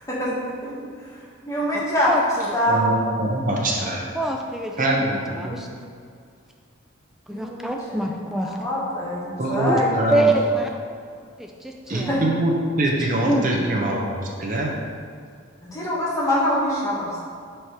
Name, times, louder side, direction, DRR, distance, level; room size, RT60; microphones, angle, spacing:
voice 1, 0.1-0.7 1.5-2.1 2.5-2.8 7.3-8.1 8.4-10.2 11.9-12.2 15.6-17.2, equal, 15° left, -7 dB, 1.3 m, -25 dB
voice 2, 2.1-2.5 3.8-5.7 7.3-8.6 9.7-9.8 10.1-10.7 11.4-12.2 13.2-13.7, right 1 dB, ahead, 1 dB, 0.3 m, -25 dB
voice 3, 2.6-4.1 4.8-5.2 5.4-5.6 9.4-10.2 11.9-12.5 12.8-14.1 14.4-14.7, right 1 dB, 40° right, -1 dB, 0.8 m, -23 dB
4.9 x 4.5 x 4.7 m, 2.2 s
head